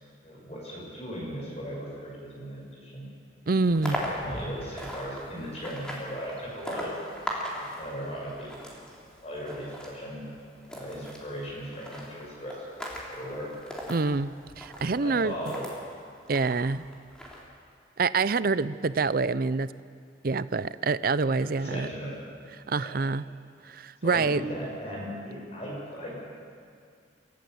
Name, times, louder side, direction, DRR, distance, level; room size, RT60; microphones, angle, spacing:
voice 1, 0.2-3.1 3.7-6.9 7.5-8.6 9.2-10.3 10.7-12.6 13.1-13.5 14.9-15.9 21.5-22.2 22.8-22.9 24.0-26.2, equal, 35° left, -3 dB, 6.5 m, -37 dB
voice 2, 3.5-4.0 13.9-15.4 16.3-16.9 18.0-19.7 20.2-21.9 22.7-23.2 23.7-24.4, right 4 dB, 50° right, 16 dB, 0.6 m, -26 dB
sound 1, 3.6-15.8 16.3-17.4, equal, 5° left, 3.7 m, -39 dB
27.5 x 14.5 x 7.9 m, 2.3 s
head